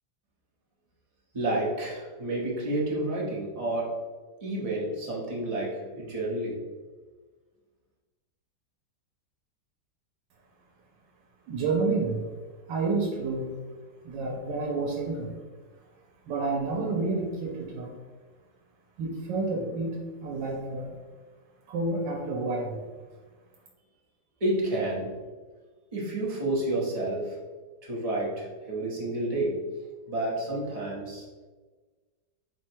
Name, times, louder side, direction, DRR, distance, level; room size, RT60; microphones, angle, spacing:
voice 1, 1.3-6.7 24.4-25.2 25.9-27.4 27.8-29.7 30.1-31.3, right 1 dB, 30° right, -5 dB, 0.7 m, -30 dB
voice 2, 11.5-12.3 12.7-13.6 14.0-15.3 16.3-18.0 19.0-21.0 21.7-22.8, right 3 dB, 85° right, 0 dB, 1.3 m, -29 dB
4.5 x 2.1 x 4.4 m, 1.4 s
omnidirectional pair, 1.9 m